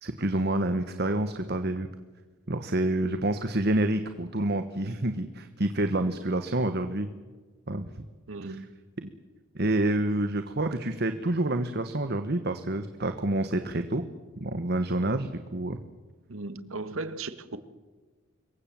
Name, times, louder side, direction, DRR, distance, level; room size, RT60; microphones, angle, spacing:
voice 1, 0.0-1.9 2.5-7.1 7.7-7.9 8.4-8.6 9.0-9.1 9.5-14.0 14.4-15.8, right 1 dB, 50° right, 1.3 m, -28 dB
voice 2, 8.3-8.7 16.3-17.6, right 3 dB, 80° right, 1.7 m, -36 dB
26.5 x 23.0 x 7.6 m
head